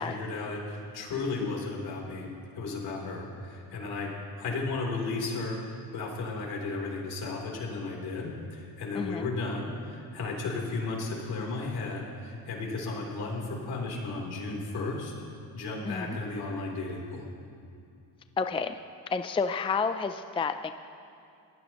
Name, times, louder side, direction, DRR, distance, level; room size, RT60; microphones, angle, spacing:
voice 1, 0.0-2.3 2.6-4.1 4.4-5.6 5.9-15.1 15.5-17.2, left 3 dB, 75° left, -1 dB, 3.7 m, -34 dB
voice 2, 8.9-9.3 15.8-16.2 18.4-18.8 19.1-20.7, left 5 dB, 15° left, 9 dB, 0.4 m, -30 dB
23.5 x 17.0 x 3.1 m, 2.5 s
cardioid pair, 105°, 39 cm